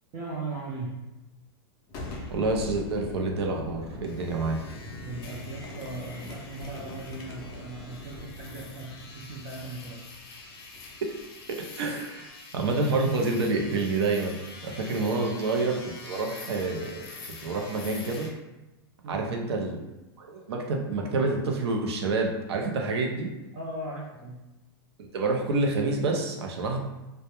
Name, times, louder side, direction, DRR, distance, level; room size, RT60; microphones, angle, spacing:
voice 1, 0.1-0.9 5.0-10.0 19.0-19.3 23.5-24.4, right 2 dB, 35° right, -4 dB, 0.4 m, -38 dB
Boom, 1.9-11.5, left 2 dB, 30° left, 0.4 m, -42 dB
voice 2, 2.3-4.6 11.0-11.1 11.5-17.1 17.4-18.3 19.1-19.8 20.2-23.3 25.0-26.8, right 3 dB, 85° right, 2 dB, 0.5 m, -28 dB
sound 1, 4.0-18.3, left 3 dB, 70° left, 0.6 m, -46 dB
2.2 x 2.0 x 2.9 m, 1.0 s
supercardioid pair, 155°, 13 cm